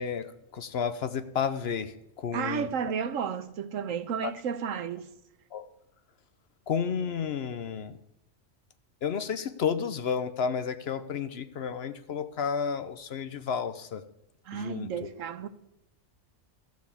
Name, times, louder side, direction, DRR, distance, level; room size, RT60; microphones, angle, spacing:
voice 1, 0.0-2.7 4.2-4.3 5.5-5.7 6.7-8.0 9.0-14.0 14.5-15.1, left 6 dB, 60° left, 0.8 m, -32 dB
voice 2, 2.3-5.1 14.5-15.5, right 7 dB, 75° right, 1.2 m, -32 dB
14.0 x 6.2 x 8.4 m
omnidirectional pair, 1.3 m